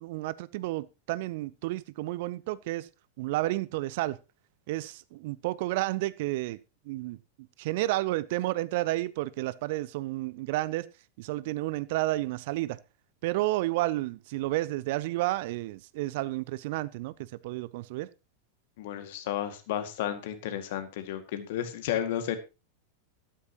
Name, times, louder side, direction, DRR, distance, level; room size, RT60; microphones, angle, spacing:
voice 1, 0.0-2.9 3.2-4.2 4.7-6.6 6.9-7.2 7.6-10.9 11.2-12.8 13.2-18.1, right 18 dB, 50° right, 0.6 m, -31 dB
voice 2, 18.8-22.4, left 10 dB, 50° left, 2.1 m, -32 dB
13.0 x 12.5 x 3.0 m
figure-of-eight pair, 90°, 0 cm